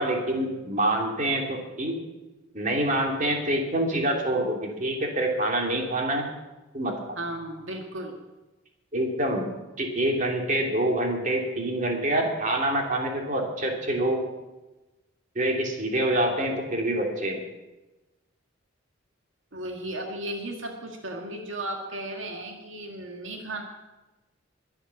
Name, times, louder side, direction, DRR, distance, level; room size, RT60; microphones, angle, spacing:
voice 1, 0.0-2.0 2.5-6.2 6.7-6.9 8.9-9.5 9.8-14.2 15.3-17.4, right 1 dB, 40° right, 1 dB, 3.0 m, -26 dB
voice 2, 7.2-8.2 19.5-23.6, right 1 dB, 80° right, 2 dB, 1.9 m, -35 dB
22.0 x 8.1 x 7.1 m, 1.1 s
head